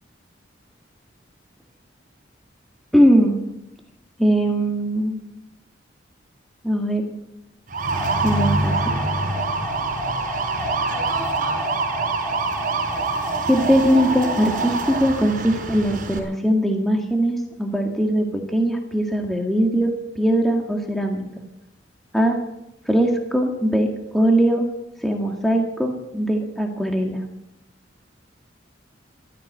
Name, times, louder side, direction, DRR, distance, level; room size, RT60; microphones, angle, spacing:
voice 1, 2.9-3.4 4.2-5.2 6.6-7.0 8.2-8.8 13.5-21.3 22.1-22.4 22.9-24.7 25.0-27.2, equal, ahead, 2 dB, 1.7 m, -20 dB
sound 1, 7.7-16.2, right 2 dB, 45° right, 5.4 m, -24 dB
14.5 x 13.5 x 7.5 m, 0.87 s
head